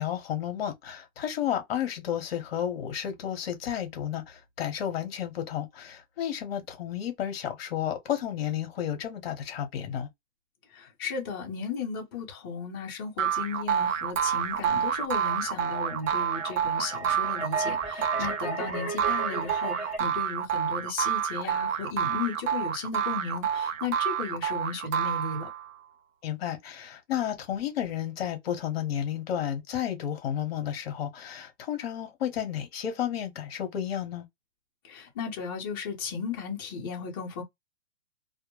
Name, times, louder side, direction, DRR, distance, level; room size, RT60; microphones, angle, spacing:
voice 1, 0.0-10.1 18.4-18.6 26.2-34.3, left 10 dB, 45° left, 0.8 m, -32 dB
voice 2, 10.7-25.5 34.8-37.4, left 5 dB, 20° left, 0.5 m, -35 dB
sound 1, 13.2-25.7, right 9 dB, 70° right, 0.6 m, -29 dB
sound 2, 14.4-20.0, right 2 dB, 15° right, 0.8 m, -37 dB
2.2 x 2.1 x 2.9 m
hypercardioid pair, 160°, 40 cm